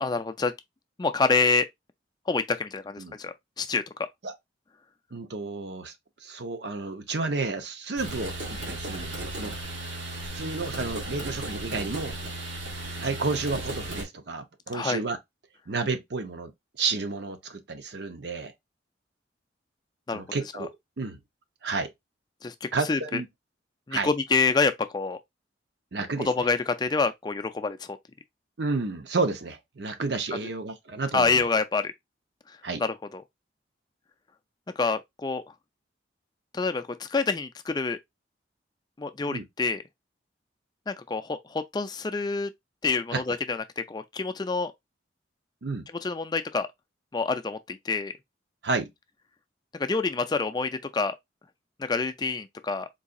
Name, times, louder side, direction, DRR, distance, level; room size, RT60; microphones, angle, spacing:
voice 1, 0.0-0.5 1.0-1.7 2.3-4.1 14.7-15.0 20.1-20.2 20.5-20.7 22.4-23.2 23.9-25.2 26.2-28.0 31.1-31.9 32.5-33.2 34.8-35.4 36.5-38.0 39.0-39.8 40.9-42.5 42.8-44.7 46.0-46.7 47.1-48.1 49.8-51.2 51.8-52.9, left 4 dB, 20° left, 0.4 m, -27 dB
voice 2, 5.1-5.9 6.2-9.5 10.3-12.2 13.0-15.2 15.7-16.5 16.8-18.5 20.1-21.2 21.6-21.9 22.7-23.3 23.9-24.1 25.9-26.5 28.6-31.4 32.6-32.8 39.3-39.5 43.1-43.2 45.6-45.9 48.6-48.9, right 3 dB, 65° right, 0.7 m, -31 dB
sound 1, 8.0-14.0, right 1 dB, 90° right, 1.4 m, -35 dB
3.9 x 2.7 x 2.5 m
head